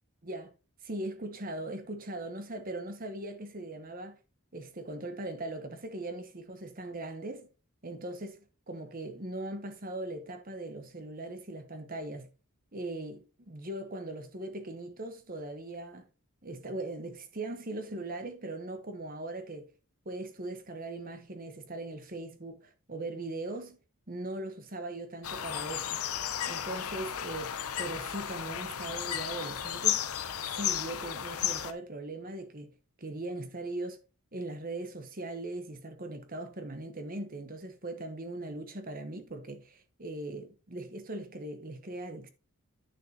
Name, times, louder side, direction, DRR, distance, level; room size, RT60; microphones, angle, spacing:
voice 1, 0.8-4.2 4.5-7.5 7.8-12.3 12.7-16.1 16.4-19.7 20.0-23.8 24.1-26.0 26.4-30.1 30.5-34.0 34.3-42.3, right 2 dB, 40° right, 1.1 m, -40 dB
sound 1, 25.2-31.7, left 10 dB, 80° left, 0.8 m, -34 dB
10.5 x 6.4 x 2.9 m
head